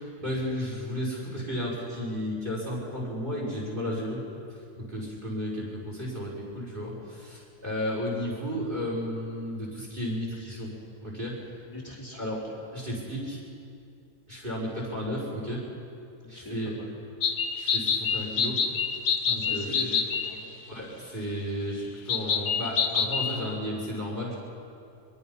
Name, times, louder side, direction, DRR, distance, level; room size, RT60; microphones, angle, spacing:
voice 1, 0.2-4.2 4.8-10.7 11.0-11.4 12.1-12.4 12.7-13.4 14.3-15.6 16.3-16.7 17.6-18.6 19.2-19.7 20.7-24.4, equal, 30° right, -2 dB, 6.1 m, -33 dB
voice 2, 11.6-12.6 16.2-16.9 19.3-20.8, left 1 dB, 10° left, -8 dB, 3.1 m, -42 dB
sound 1, 17.2-20.3 22.1-23.3, left 6 dB, 70° left, 1.6 m, -27 dB
24.0 x 23.0 x 5.7 m, 2.5 s
omnidirectional pair, 1.8 m